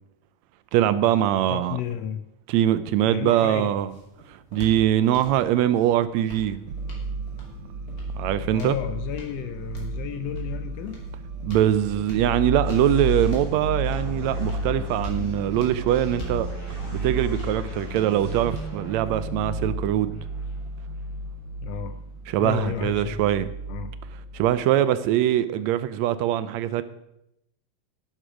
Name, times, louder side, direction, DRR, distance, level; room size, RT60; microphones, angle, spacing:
voice 1, 0.7-1.8 2.5-3.9 4.3-6.6 8.2-8.8 11.4-16.5 17.0-20.1 22.3-23.5 24.3-26.8, right 12 dB, 80° right, 1.7 m, -22 dB
voice 2, 1.5-2.2 3.1-3.7 8.5-11.0 21.6-21.9 22.4-23.4 23.7-23.9, left 10 dB, 75° left, 1.6 m, -32 dB
sound 1, 3.4-19.5, equal, 30° left, 3.4 m, -43 dB
sound 2, 6.7-24.6, right 1 dB, 60° right, 1.5 m, -33 dB
sound 3, 12.6-22.1, right 1 dB, 15° right, 3.7 m, -41 dB
11.0 x 9.9 x 5.0 m
omnidirectional pair, 3.3 m